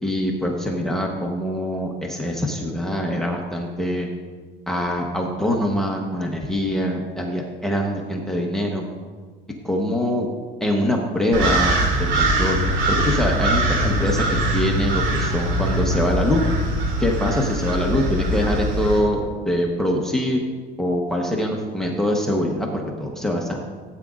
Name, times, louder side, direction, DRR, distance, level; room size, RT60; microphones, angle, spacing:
voice 1, 0.0-4.1 4.7-8.8 9.6-10.3 10.6-11.7 12.1-12.6 12.9-16.4 17.0-19.2 19.4-20.4 20.8-23.6, left 1 dB, ahead, 0 dB, 1.0 m, -23 dB
sound 1, 11.3-19.0, right 1 dB, 65° right, 2.7 m, -22 dB
16.5 x 9.0 x 2.5 m, 1.5 s
cardioid pair, 145°, 21 cm